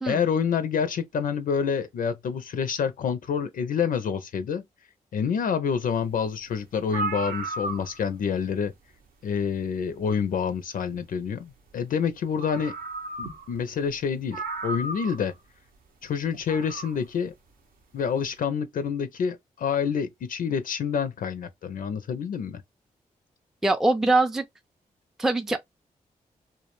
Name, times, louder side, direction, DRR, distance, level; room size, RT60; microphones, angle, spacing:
voice 1, 0.1-4.6 5.1-8.7 9.2-12.7 13.2-15.3 16.0-17.3 17.9-22.6, left 6 dB, 65° left, 0.4 m, -27 dB
sound 1, 6.5-6.6 6.8-8.2 9.6-9.7 12.0-12.1 12.4-13.6 13.9-14.0 14.3-15.3 16.3-17.0, right 3 dB, 70° right, 0.7 m, -34 dB
voice 2, 23.6-24.4 25.2-25.6, right 2 dB, 5° right, 0.4 m, -22 dB
2.3 x 2.0 x 2.9 m
supercardioid pair, 45°, 16 cm